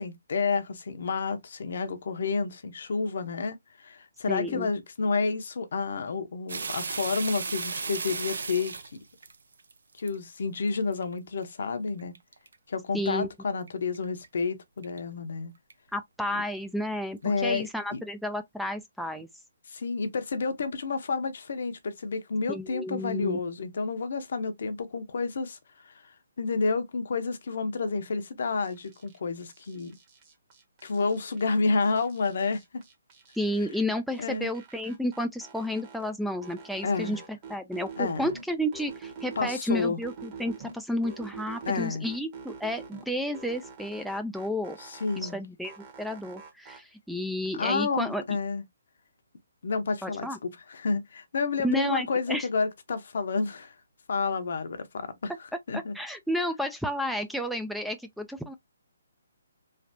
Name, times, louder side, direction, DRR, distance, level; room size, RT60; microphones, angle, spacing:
voice 1, 0.0-8.8 10.0-12.2 12.7-15.5 17.2-18.0 19.7-25.6 25.8-25.9 26.4-29.9 30.8-32.8 34.2-34.5 36.8-37.2 38.0-38.3 39.4-40.0 41.7-42.1 44.8-45.4 47.5-48.6 49.6-53.7 54.1-55.3 55.7-55.9, left 4 dB, 60° left, 0.7 m, -30 dB
voice 2, 4.3-4.7 12.9-13.3 15.9-19.3 22.5-23.4 33.4-44.8 45.2-45.7 46.0-48.2 50.0-50.4 51.6-52.5 55.7-58.5, equal, ahead, 0.3 m, -31 dB
sound 1, 6.5-10.2 10.7-11.0 11.4-11.5 12.0-12.6 13.1-13.2 13.7-13.8 13.9-14.3 14.8-15.0 15.7-15.8, right 4 dB, 70° right, 0.6 m, -34 dB
sound 2, 28.6-29.2 29.5-31.5 31.8-33.8 34.1-36.1 36.4-38.4 38.7-40.7 41.0-43.0 43.3-45.4 45.6-46.8, right 5 dB, 30° right, 1.2 m, -46 dB
3.3 x 2.4 x 2.6 m
hypercardioid pair, 145°, 0 cm